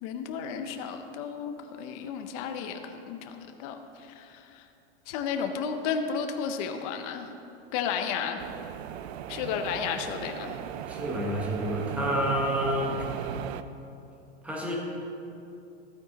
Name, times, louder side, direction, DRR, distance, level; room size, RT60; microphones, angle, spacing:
voice 1, 0.0-4.7 5.1-7.3 7.7-8.4 9.3-10.6, left 6 dB, 35° left, 6 dB, 0.6 m, -33 dB
sound 1, 8.4-13.6, right 10 dB, 75° right, 0.6 m, -37 dB
voice 2, 10.9-13.0 14.4-14.7, equal, 5° right, -3 dB, 1.1 m, -29 dB
12.5 x 9.1 x 4.0 m, 2.7 s
supercardioid pair, 170°, 32 cm